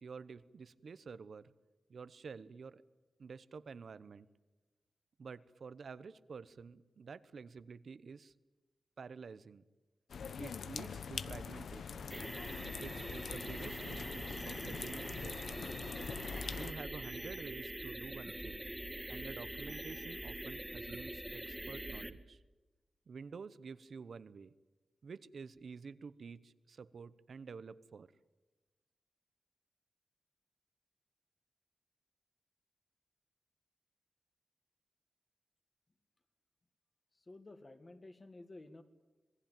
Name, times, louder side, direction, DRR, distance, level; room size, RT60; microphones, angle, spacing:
voice 1, 0.0-1.5 1.9-2.8 3.2-4.3 5.2-8.3 9.0-9.6 10.4-12.1 12.8-15.6 16.5-18.7 19.1-22.4 23.1-24.5 25.0-28.1, right 5 dB, 55° right, 16 dB, 0.9 m, -49 dB
sound 1, 10.1-16.7, left 6 dB, 85° left, 1.0 m, -44 dB
sound 2, 12.1-22.1, right 1 dB, 10° right, 1.5 m, -44 dB
voice 2, 37.3-38.8, left 2 dB, 25° left, 9 dB, 1.9 m, -53 dB
26.5 x 20.5 x 9.1 m, 1.2 s
wide cardioid pair, 180°, 0 cm